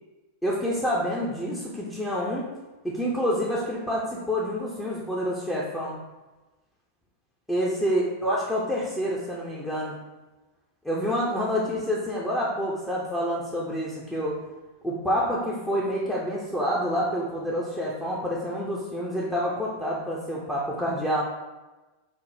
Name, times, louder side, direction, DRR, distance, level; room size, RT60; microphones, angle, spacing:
voice 1, 0.4-2.5 2.8-6.0 7.5-10.0 10.8-14.3 14.8-21.2, equal, 5° left, -6 dB, 0.5 m, -28 dB
4.1 x 2.1 x 3.2 m, 1.1 s
figure-of-eight pair, 90°, 0 cm